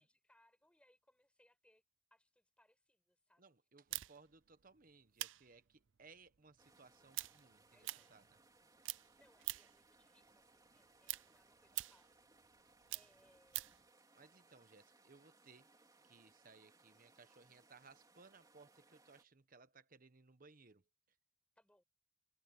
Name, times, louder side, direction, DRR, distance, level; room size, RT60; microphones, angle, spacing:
voice 1, 0.0-1.8 2.1-3.5 7.7-8.2 9.2-13.9 21.6-21.8, left 1 dB, 5° left, 7.6 m, -73 dB
voice 2, 3.4-8.2 14.1-15.7 16.0-20.8, right 4 dB, 45° right, 1.2 m, -63 dB
sound 1, 3.9-8.6 8.8-9.9 10.2-13.8, right 18 dB, 70° right, 0.5 m, -46 dB
sound 2, 6.6-19.2, right 3 dB, 20° right, 3.4 m, -69 dB
head